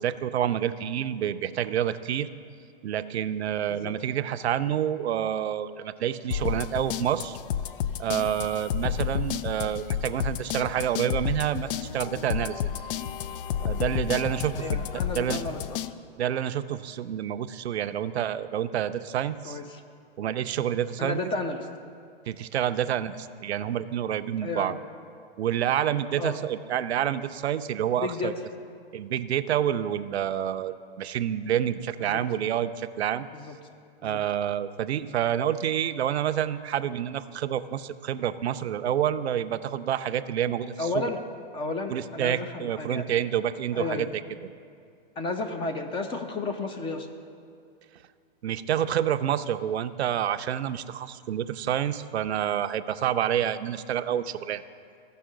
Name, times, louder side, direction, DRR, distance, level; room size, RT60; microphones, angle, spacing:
voice 1, 0.0-2.3 2.8-7.4 8.0-12.6 13.6-14.9 15.1-15.4 16.2-19.6 20.2-21.2 22.3-24.7 25.4-28.3 28.9-33.3 34.0-41.0 41.9-44.1 48.4-54.6, right 10 dB, 85° right, 11 dB, 0.5 m, -28 dB
sound 1, 6.3-15.9, left 9 dB, 60° left, 0.4 m, -31 dB
voice 2, 14.5-15.9 19.4-19.8 21.0-21.7 24.4-24.8 26.2-26.4 28.0-28.4 32.0-32.2 33.3-33.6 34.0-34.2 40.8-41.2 41.5-43.0 43.7-44.1 45.2-47.1, left 3 dB, 15° left, 6 dB, 0.6 m, -32 dB
15.0 x 5.5 x 3.8 m, 2.3 s
hypercardioid pair, 135°, 31 cm